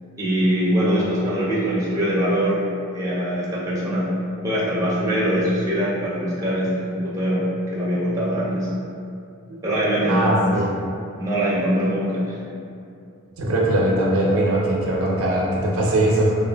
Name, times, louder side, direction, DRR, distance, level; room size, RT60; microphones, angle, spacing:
voice 1, 0.2-2.6 2.9-4.2 4.4-8.7 9.6-10.6 11.2-12.4, equal, 15° right, -8 dB, 0.4 m, -22 dB
voice 2, 10.1-10.7 13.4-16.4, right 1 dB, 75° right, -3 dB, 0.5 m, -21 dB
3.0 x 2.3 x 2.2 m, 2.4 s
head